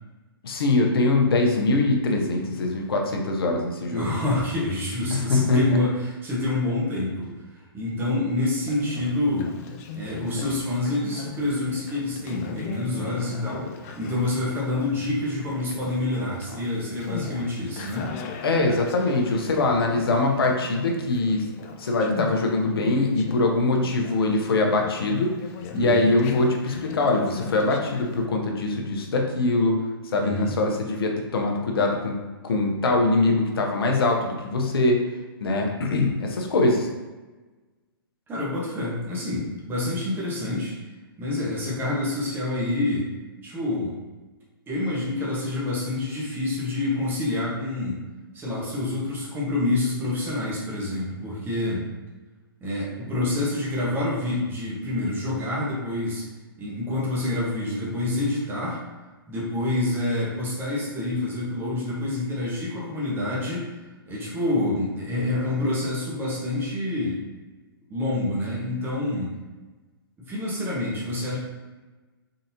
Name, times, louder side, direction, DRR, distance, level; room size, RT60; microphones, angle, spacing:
voice 1, 0.4-4.1 5.1-5.8 18.4-21.5 21.8-25.3 25.7-29.8 30.1-32.2 32.4-35.0 35.4-36.9, left 2 dB, 75° left, 2 dB, 0.8 m, -23 dB
voice 2, 3.9-7.3 7.7-9.5 9.9-13.7 14.0-18.1 25.7-26.1 30.2-30.5 38.3-40.7 41.2-43.1 43.4-44.0 44.7-48.0 48.3-51.9 52.6-56.2 56.6-58.8 59.3-63.6 64.1-67.2 67.9-69.3 70.2-71.4, left 2 dB, 15° right, -5 dB, 1.3 m, -27 dB
Conversation, 8.6-28.3, left 5 dB, 35° left, 0.4 m, -39 dB
4.0 x 3.8 x 2.8 m, 1.2 s
hypercardioid pair, 130°, 13 cm